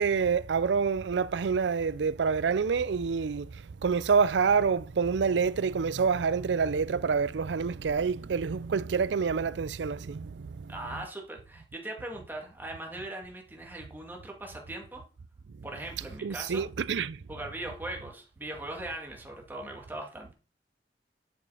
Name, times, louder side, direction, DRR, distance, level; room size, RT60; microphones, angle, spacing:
voice 1, 0.0-10.7 16.2-17.2, right 5 dB, 85° right, 0.5 m, -27 dB
voice 2, 10.7-15.0 15.6-16.7 17.3-20.3, right 1 dB, 10° right, 2.1 m, -40 dB
11.0 x 5.1 x 4.9 m
head